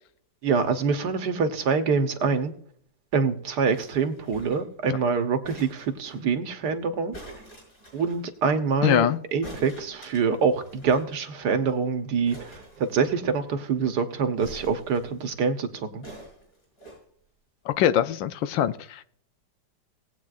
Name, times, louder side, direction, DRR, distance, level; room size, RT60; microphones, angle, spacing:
voice 1, 0.4-2.5 3.1-7.1 7.9-16.0, right 5 dB, 65° right, 1.5 m, -25 dB
sound 1, 3.7-4.7 5.4-6.2 7.1-8.2 9.4-11.1 11.4-11.5 11.7-11.8 12.3-13.4 14.4-15.3 16.0-17.0 17.7-17.8, right 1 dB, 45° left, 5.7 m, -46 dB
voice 2, 8.8-9.2 17.6-19.0, left 11 dB, 80° left, 1.3 m, -23 dB
18.5 x 8.5 x 2.5 m
omnidirectional pair, 2.0 m